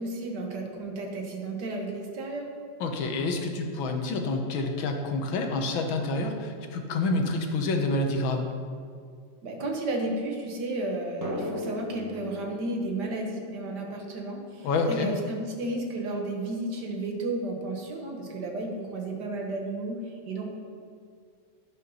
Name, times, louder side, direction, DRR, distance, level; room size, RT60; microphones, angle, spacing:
voice 1, 0.0-2.5 9.4-20.6, right 2 dB, 55° right, 1 dB, 1.8 m, -33 dB
voice 2, 2.8-8.5 14.6-15.1, left 2 dB, 75° left, 4 dB, 1.7 m, -28 dB
Drum, 11.2-14.5, left 1 dB, 15° right, 0.8 m, -38 dB
10.5 x 5.7 x 5.5 m, 2.2 s
omnidirectional pair, 2.3 m